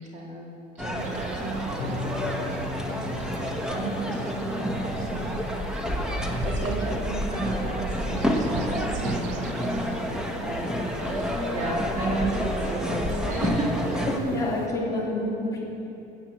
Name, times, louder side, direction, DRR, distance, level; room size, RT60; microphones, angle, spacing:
voice 1, 0.0-6.2 6.4-13.9, right 3 dB, 40° right, -2 dB, 2.2 m, -34 dB
sound 1, 0.8-14.2, left 1 dB, 5° right, 1.1 m, -29 dB
sound 2, 1.0-14.7, right 8 dB, 70° right, 0.5 m, -40 dB
sound 3, 1.8-9.5, left 8 dB, 35° left, 0.6 m, -41 dB
voice 2, 14.1-15.6, left 1 dB, 15° left, -6 dB, 2.9 m, -28 dB
13.5 x 8.4 x 7.3 m, 2.8 s
cardioid pair, 150°, 19 cm